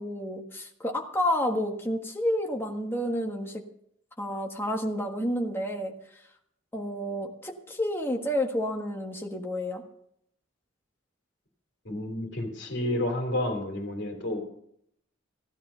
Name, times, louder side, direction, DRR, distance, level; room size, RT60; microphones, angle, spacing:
voice 1, 0.0-3.6 4.2-5.9 6.7-9.8, equal, 10° left, 2 dB, 1.5 m, -30 dB
voice 2, 11.8-14.4, left 1 dB, 65° left, 3 dB, 3.0 m, -30 dB
15.5 x 11.5 x 5.6 m, 0.72 s
head